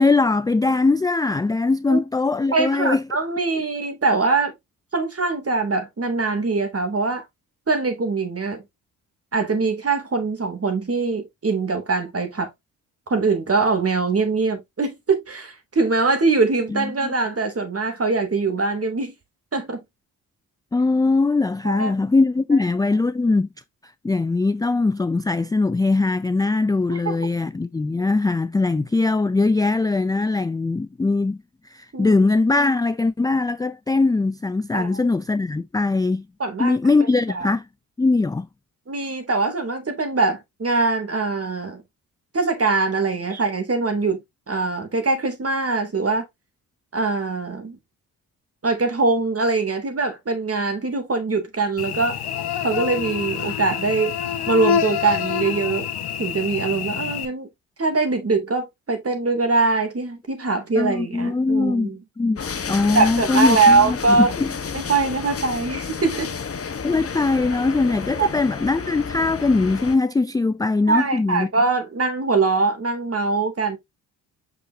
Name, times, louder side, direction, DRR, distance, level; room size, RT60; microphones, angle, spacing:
voice 1, 0.0-3.0 16.7-17.1 20.7-23.5 24.0-31.4 31.7-36.2 36.6-37.6 38.0-38.5 43.3-43.4 60.8-61.9 62.2-62.4 62.7-64.5 66.8-71.5, left 3 dB, 10° left, 0.4 m, -21 dB
voice 2, 2.5-4.5 4.9-7.2 7.7-8.6 9.3-12.5 13.1-19.1 19.5-19.8 21.6-22.1 22.5-22.6 26.9-27.1 31.9-32.1 34.7-35.1 36.4-36.8 37.3-37.5 38.9-41.8 42.3-44.2 44.5-46.3 46.9-47.8 48.6-52.2 52.6-54.1 54.5-55.9 56.2-57.5 57.8-62.0 62.9-64.3 64.7-66.3 68.2-68.3 70.9-73.8, right 3 dB, 35° right, 2.8 m, -22 dB
Cricket / Buzz, 51.8-57.3, left 8 dB, 65° left, 1.4 m, -26 dB
sound 1, 62.4-70.0, left 6 dB, 35° left, 1.2 m, -31 dB
6.2 x 6.1 x 2.7 m
supercardioid pair, 50°, 41 cm